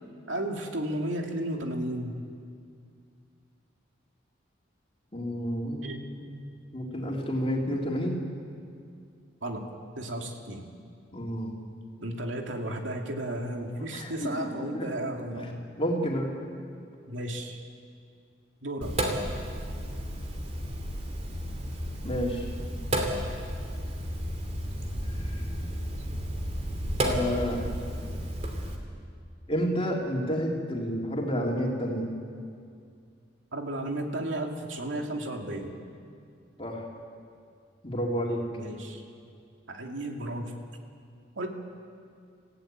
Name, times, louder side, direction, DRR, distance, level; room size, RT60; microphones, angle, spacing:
voice 1, 0.3-2.2 5.8-6.0 9.4-9.6 10.0-10.6 12.0-15.6 17.1-17.6 18.6-19.0 33.5-35.8 38.6-39.0 39.7-40.6 41.4-41.5, right 1 dB, 85° right, 2 dB, 2.5 m, -33 dB
voice 2, 5.1-6.2 6.7-8.2 11.1-11.5 13.8-16.3 22.0-22.5 25.1-25.5 27.0-27.6 29.5-32.1 36.6-36.9 37.8-38.4, equal, 30° left, -1 dB, 3.4 m, -30 dB
Sink (filling or washing), 18.8-28.7, equal, 35° right, 2.8 m, -32 dB
27.5 x 15.5 x 9.1 m, 2.3 s
head